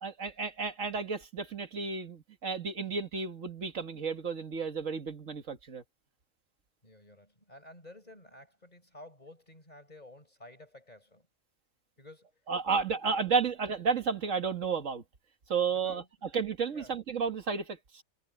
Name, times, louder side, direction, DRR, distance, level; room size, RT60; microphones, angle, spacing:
voice 1, 0.0-5.8 12.5-15.0 15.5-18.0, right 5 dB, 75° right, 1.9 m, -32 dB
voice 2, 6.8-11.3 12.0-12.4 12.7-13.2 15.7-16.1 16.7-16.9, left 1 dB, 30° left, 6.5 m, -53 dB
omnidirectional pair, 1.3 m